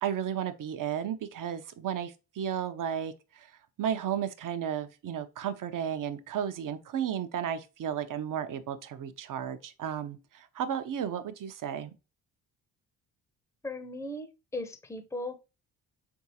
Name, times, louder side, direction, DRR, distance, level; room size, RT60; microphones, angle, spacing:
voice 1, 0.0-3.5 3.8-11.9, right 9 dB, 50° right, 0.8 m, -33 dB
voice 2, 13.6-15.4, left 1 dB, 5° left, 0.7 m, -37 dB
3.8 x 3.6 x 2.8 m
supercardioid pair, 60°, 42 cm